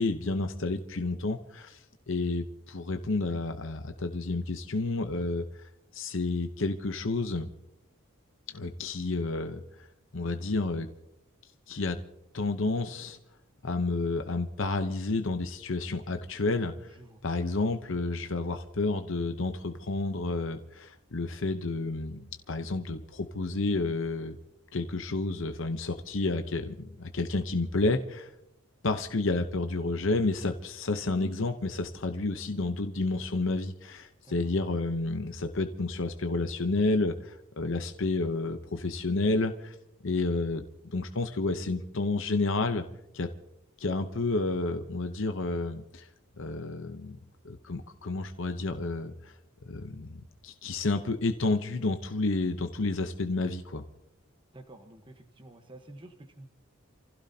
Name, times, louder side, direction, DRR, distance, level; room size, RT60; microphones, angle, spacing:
voice 1, 0.0-5.6 5.9-7.5 8.5-9.9 10.1-10.9 11.7-12.0 12.3-13.2 13.6-16.9 17.2-24.4 24.7-28.3 28.8-39.8 40.0-42.8 43.1-43.3 43.8-46.1 46.4-47.2 47.4-49.3 49.7-53.8, left 3 dB, 60° left, 7 dB, 0.8 m, -30 dB
voice 2, 16.9-17.2 34.2-34.5 54.5-56.5, right 1 dB, 25° right, 4 dB, 1.1 m, -50 dB
29.0 x 16.0 x 2.8 m, 0.84 s
head